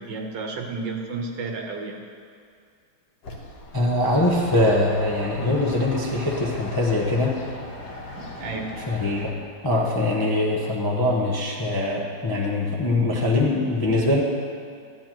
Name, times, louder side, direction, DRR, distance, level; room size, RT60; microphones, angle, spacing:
voice 1, 0.0-2.0 8.2-8.7, right 4 dB, 80° right, 2 dB, 1.7 m, -32 dB
sound 1, 3.2-9.3, left 2 dB, 80° left, 1.8 m, -37 dB
voice 2, 3.7-7.4 8.9-9.3 9.6-14.2, left 2 dB, 25° left, -4 dB, 0.4 m, -22 dB
12.0 x 9.5 x 3.0 m, 2.3 s
omnidirectional pair, 1.9 m